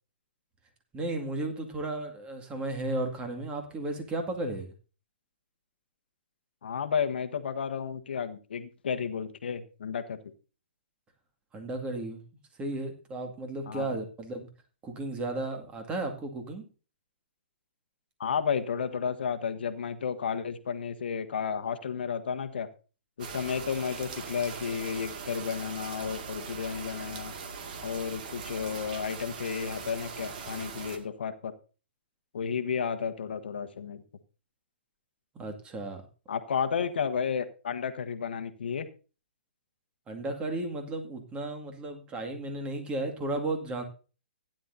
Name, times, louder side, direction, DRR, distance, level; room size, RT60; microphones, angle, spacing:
voice 1, 0.9-4.7 11.5-12.2 12.6-14.5 14.8-16.7 35.3-36.0 40.1-43.8, right 2 dB, 15° right, 4 dB, 2.1 m, -34 dB
voice 2, 6.6-10.2 13.7-13.9 18.2-22.7 23.2-27.3 27.8-31.5 32.3-34.0 36.3-38.9, left 6 dB, 65° left, 9 dB, 1.2 m, -32 dB
sound 1, 23.2-31.0, right 5 dB, 50° right, 2.1 m, -40 dB
16.0 x 10.5 x 2.7 m, 0.36 s
figure-of-eight pair, 130°, 6 cm